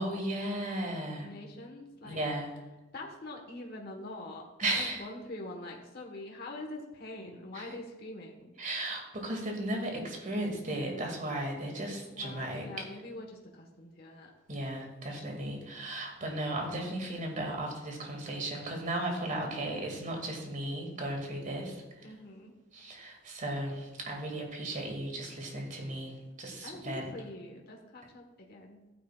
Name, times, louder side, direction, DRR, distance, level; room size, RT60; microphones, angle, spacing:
voice 1, 0.0-1.3 2.0-2.5 4.6-5.0 7.5-7.6 8.6-12.6 14.5-21.8 22.7-27.1, right 1 dB, 40° right, 1 dB, 2.2 m, -35 dB
voice 2, 1.2-2.2 2.9-8.5 12.1-14.3 19.2-19.9 22.0-22.5 26.6-28.9, left 2 dB, 55° left, 1 dB, 1.3 m, -44 dB
14.5 x 9.4 x 2.4 m, 1.1 s
head